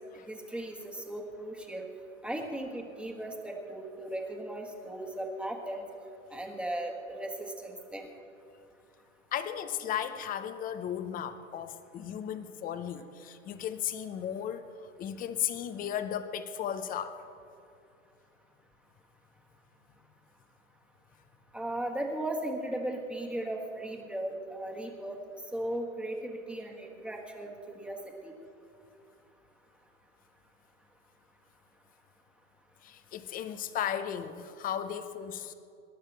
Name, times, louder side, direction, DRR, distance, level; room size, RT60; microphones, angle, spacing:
voice 1, 0.3-1.9 2.2-5.8 6.3-8.1 21.5-25.2 25.5-28.3, right 1 dB, 5° right, 1 dB, 1.6 m, -37 dB
voice 2, 9.3-14.6 15.0-17.2 32.8-35.5, left 9 dB, 20° left, 11 dB, 0.8 m, -35 dB
26.0 x 11.5 x 3.4 m, 2.5 s
hypercardioid pair, 120°, 40 cm